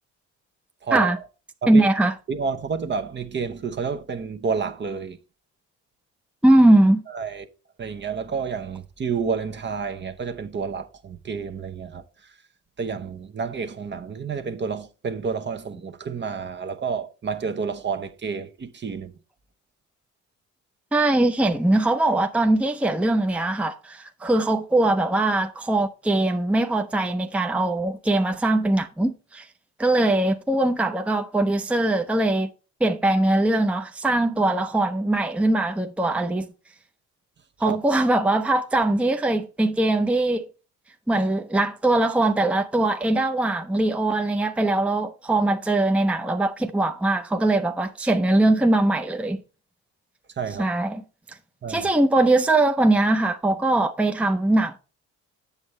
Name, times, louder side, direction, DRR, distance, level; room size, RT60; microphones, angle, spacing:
voice 1, 0.8-1.1 1.6-1.9 2.3-5.2 7.1-7.5 7.8-12.0 12.8-19.1 37.6-37.8 50.4-50.7 51.6-51.9, right 5 dB, 40° right, 0.8 m, -30 dB
voice 2, 1.7-2.1 6.4-7.0 20.9-29.5 29.8-32.5 32.8-36.5 37.6-40.5 41.1-49.4 50.6-51.0 51.7-54.8, right 2 dB, 5° right, 0.6 m, -21 dB
8.2 x 7.0 x 3.2 m
cardioid pair, 90°, 30 cm